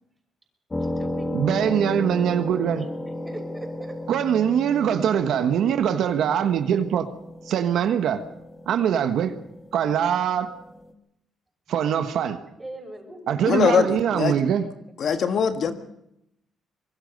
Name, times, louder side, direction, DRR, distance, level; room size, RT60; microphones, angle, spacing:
sound 1, 0.7-10.9, left 1 dB, 20° left, 2.2 m, -34 dB
voice 1, 0.8-1.3 3.1-4.0 12.6-13.4 15.0-15.3 15.5-15.7, right 1 dB, 15° right, 5.9 m, -40 dB
voice 2, 1.3-2.9 4.1-7.1 7.5-8.2 8.7-9.3 9.7-10.5 11.7-12.4 13.3-14.6, right 9 dB, 75° right, 1.3 m, -22 dB
voice 3, 13.5-14.3 15.0-15.7, left 6 dB, 60° left, 1.6 m, -21 dB
24.0 x 22.0 x 5.3 m
cardioid pair, 90°, 0 cm